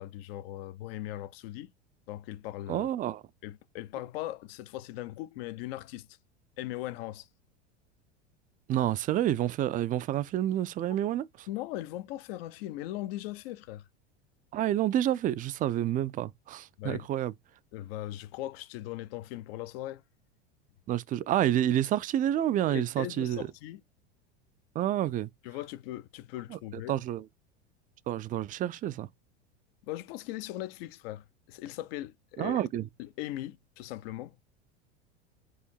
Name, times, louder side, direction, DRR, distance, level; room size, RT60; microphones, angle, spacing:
voice 1, 0.0-1.7 2.1-2.9 3.4-6.1 6.6-7.3 11.5-13.8 16.8-17.1 17.7-20.0 22.7-23.8 25.4-26.9 29.9-32.6 33.0-34.4, left 15 dB, 55° left, 0.6 m, -39 dB
voice 2, 2.7-3.2 8.7-11.5 14.5-17.3 20.9-23.5 24.8-25.3 26.5-26.6 26.9-27.2 28.1-29.1 32.4-32.9, right 12 dB, 25° right, 0.4 m, -29 dB
4.8 x 2.5 x 4.5 m
hypercardioid pair, 95°, 35 cm